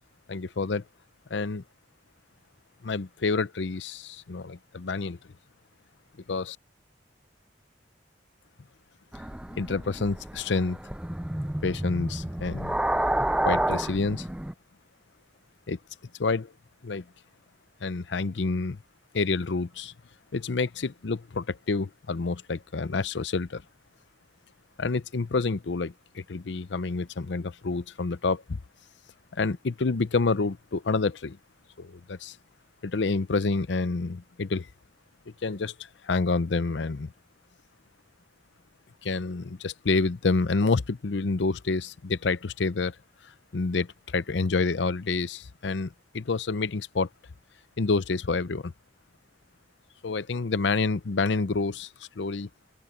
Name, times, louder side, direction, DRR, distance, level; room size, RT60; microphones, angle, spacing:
voice 1, 0.3-0.8 1.3-1.6 2.8-5.2 6.3-6.6 9.6-10.8 11.6-12.8 13.4-14.3 15.7-15.8 16.2-16.5 16.8-17.0 17.8-18.8 19.1-19.9 20.3-23.6 24.8-28.6 29.3-31.4 31.8-32.4 32.8-34.7 35.4-35.7 36.0-37.1 39.0-43.0 43.5-47.1 47.8-48.7 50.0-51.9 52.2-52.5, left 4 dB, 70° left, 0.6 m, -28 dB
sound 1, 9.1-14.5, right 1 dB, 5° right, 0.4 m, -30 dB
open air
head